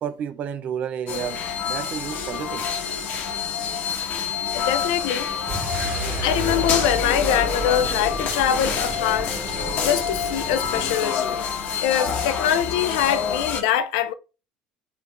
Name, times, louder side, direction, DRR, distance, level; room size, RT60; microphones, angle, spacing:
voice 1, 0.0-2.7, right 8 dB, 50° right, 0.4 m, -31 dB
sound 1, 1.1-13.6, left 6 dB, 55° left, 0.9 m, -27 dB
voice 2, 4.5-5.3 6.2-9.4 9.8-11.3 11.8-14.1, left 10 dB, 80° left, 0.4 m, -23 dB
sound 2, 5.4-11.1, right 2 dB, 35° right, 1.8 m, -32 dB
sound 3, 6.3-9.9 10.4-10.6, left 2 dB, 30° left, 0.8 m, -39 dB
3.2 x 2.5 x 2.9 m
supercardioid pair, 85°, 3 cm